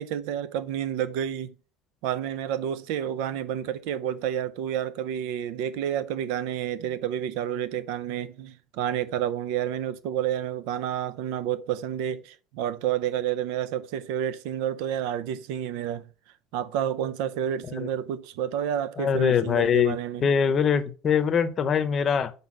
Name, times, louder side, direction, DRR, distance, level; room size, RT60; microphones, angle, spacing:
voice 1, 0.0-1.5 2.0-16.0 16.5-20.3, right 10 dB, 80° right, 0.6 m, -30 dB
voice 2, 19.0-22.3, left 7 dB, 35° left, 0.7 m, -23 dB
5.3 x 4.2 x 5.9 m
cardioid pair, 145°, 0 cm